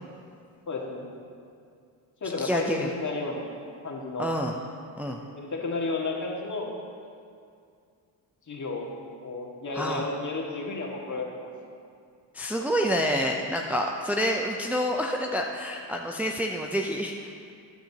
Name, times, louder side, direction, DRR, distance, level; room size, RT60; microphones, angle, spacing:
voice 1, 0.7-1.1 2.2-3.5 3.8-4.3 5.3-6.7 8.5-8.9 9.2-11.5, left 3 dB, 40° left, -1 dB, 2.1 m, -32 dB
voice 2, 2.4-2.9 4.2-4.6 5.0-5.2 9.7-10.1 12.3-17.1, equal, 5° right, 0 dB, 0.7 m, -28 dB
13.5 x 10.0 x 3.0 m, 2.3 s
supercardioid pair, 65°, 47 cm